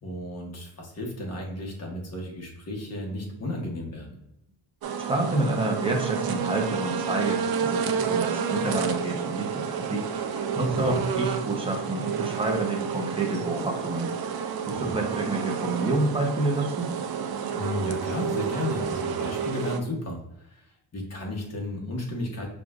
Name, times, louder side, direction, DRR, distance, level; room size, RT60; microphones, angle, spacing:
voice 1, 0.0-4.2 10.6-11.0 14.8-15.0 17.5-20.6 20.9-22.5, left 1 dB, 30° left, -1 dB, 1.1 m, -33 dB
sound 1, 4.8-19.8, right 6 dB, 50° right, 0.5 m, -30 dB
voice 2, 5.1-10.1 10.3-14.1 14.7-16.9, right 2 dB, 10° right, 0 dB, 0.7 m, -28 dB
6.4 x 2.5 x 2.4 m, 0.87 s
wide cardioid pair, 155°, 48 cm